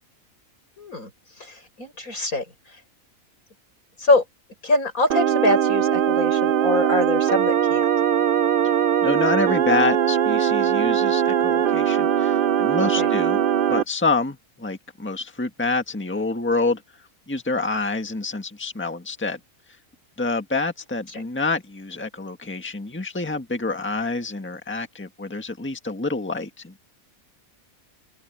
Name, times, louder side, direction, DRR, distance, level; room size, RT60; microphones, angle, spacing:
voice 1, 0.8-1.1 1.4-2.8 4.0-4.2 4.6-7.9 13.0-13.1 21.1-21.2, left 2 dB, 85° left, 6.7 m, -24 dB
sound 1, 5.1-13.8, right 9 dB, 55° right, 0.6 m, -20 dB
voice 2, 9.0-13.4 13.7-16.8 17.3-19.4 20.2-26.9, left 3 dB, 10° left, 1.6 m, -27 dB
open air
omnidirectional pair, 1.5 m